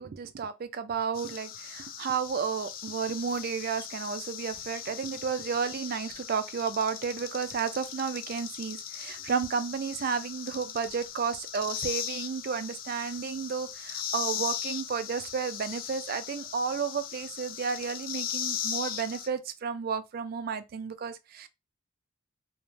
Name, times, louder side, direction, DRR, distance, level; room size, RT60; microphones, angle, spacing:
voice 1, 0.0-21.5, right 6 dB, 50° right, 0.3 m, -32 dB
sound 1, 1.1-19.3, left 9 dB, 45° left, 0.3 m, -38 dB
3.1 x 2.0 x 2.5 m
head